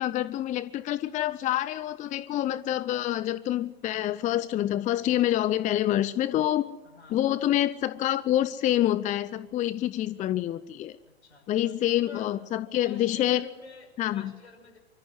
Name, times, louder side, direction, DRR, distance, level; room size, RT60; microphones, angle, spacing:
voice 1, 0.0-6.6 7.1-11.0 11.5-13.4 14.0-14.3, left 13 dB, 25° left, 15 dB, 0.7 m, -27 dB
voice 2, 6.8-7.4 11.0-12.3 12.8-14.8, left 2 dB, 85° left, 1 dB, 6.2 m, -50 dB
25.0 x 14.0 x 9.6 m, 1.1 s
figure-of-eight pair, 95°, 32 cm